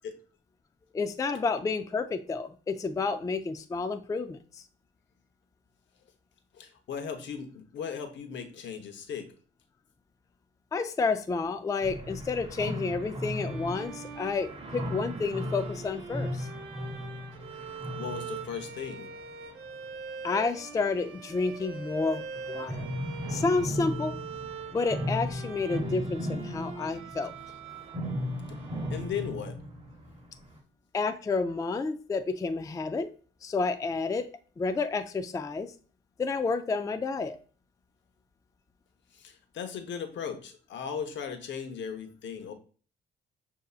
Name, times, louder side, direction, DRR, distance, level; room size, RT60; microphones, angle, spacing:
voice 1, 0.9-4.6 10.7-16.5 20.2-22.9 23.3-24.2 24.7-27.3 30.9-33.1 33.4-34.3 34.6-35.7 36.2-37.4, left 4 dB, 15° left, 9 dB, 0.3 m, -30 dB
voice 2, 6.5-9.3 18.0-19.1 28.5-28.6 28.9-29.6 39.1-42.5, left 7 dB, 65° left, 7 dB, 0.8 m, -37 dB
sound 1, 11.8-20.0 21.8-30.6, equal, 30° right, 0.9 m, -37 dB
Bowed string instrument, 13.2-29.8, right 5 dB, 80° right, 0.8 m, -43 dB
6.5 x 2.8 x 2.4 m, 0.40 s
cardioid pair, 90°, 20 cm